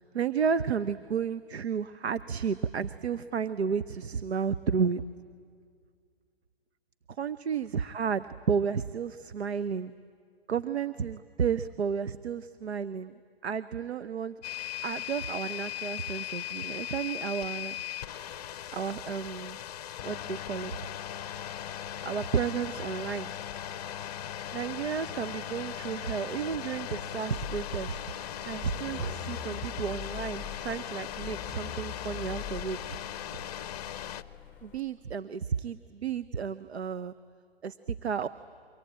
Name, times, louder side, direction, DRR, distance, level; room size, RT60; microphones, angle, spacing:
voice 1, 0.0-5.0 7.1-9.9 10.5-13.1 13.4-14.4 14.8-17.8 18.7-19.6 20.0-20.7 22.0-23.3 24.5-32.8 34.6-37.1 37.6-38.3, right 6 dB, 85° right, 12 dB, 0.8 m, -32 dB
sound 1, 14.4-34.2, left 11 dB, 40° left, 0.7 m, -38 dB
sound 2, 27.4-34.8, left 10 dB, 5° left, 1.4 m, -43 dB
28.5 x 24.0 x 8.7 m, 2.2 s
hypercardioid pair, 140°, 31 cm